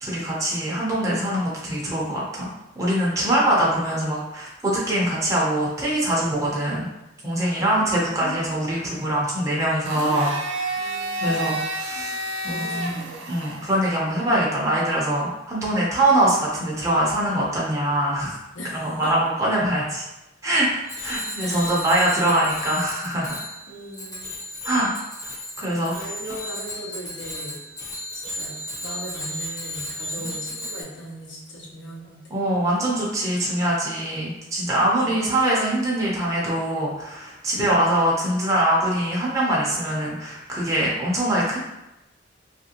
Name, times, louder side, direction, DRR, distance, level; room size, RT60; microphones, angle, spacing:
voice 1, 0.0-6.9 7.2-10.7 11.2-12.1 12.4-12.9 13.3-18.4 18.7-20.0 20.4-23.5 24.6-24.9 25.2-25.3 25.6-26.1 30.2-30.3 32.3-41.6, right 1 dB, 15° right, -6 dB, 0.6 m, -23 dB
voice 2, 7.5-8.6 10.8-13.4 18.5-19.1 21.4-21.8 23.7-24.3 25.9-27.6 28.1-32.2 34.9-35.2 37.6-37.9, equal, 85° left, -3 dB, 0.8 m, -39 dB
Domestic sounds home sounds, 9.9-13.9, right 1 dB, 90° right, 0.5 m, -30 dB
Bicycle bell, 20.8-30.8, left 1 dB, 20° left, 0.7 m, -34 dB
3.2 x 2.5 x 2.8 m, 0.94 s
head